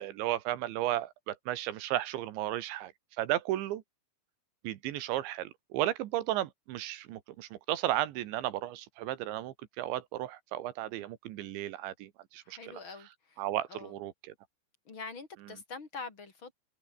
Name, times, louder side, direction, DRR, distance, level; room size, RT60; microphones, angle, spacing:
voice 1, 0.0-2.9 3.2-3.8 4.6-12.8 13.4-14.1, right 14 dB, 75° right, 3.6 m, -34 dB
voice 2, 12.4-13.4 13.7-14.0 14.9-16.5, left 4 dB, 30° left, 3.3 m, -44 dB
omnidirectional pair, 5.3 m